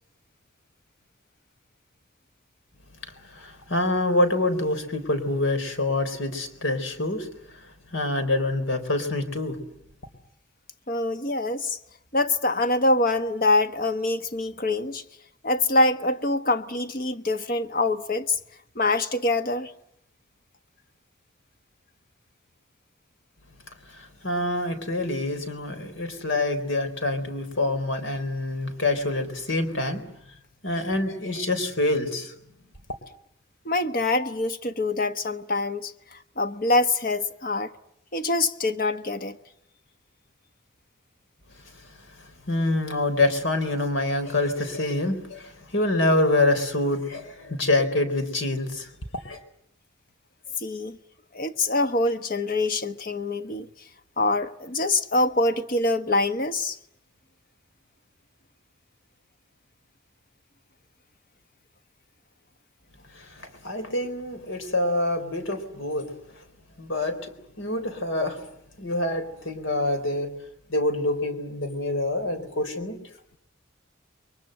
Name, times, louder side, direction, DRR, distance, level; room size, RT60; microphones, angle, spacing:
voice 1, 3.3-7.3 7.5-7.7 7.9-9.6 23.9-30.0 30.6-32.3 42.2-48.9 49.2-49.4 63.1-66.1 66.8-68.4 68.8-70.3 70.7-73.0, left 2 dB, 70° left, 4.0 m, -26 dB
voice 2, 10.9-11.8 12.1-15.0 15.4-18.4 18.7-19.7 33.6-37.7 38.1-39.4 50.6-51.0 51.3-53.7 54.2-56.8, left 2 dB, 45° left, 1.2 m, -25 dB
29.0 x 23.5 x 7.8 m
head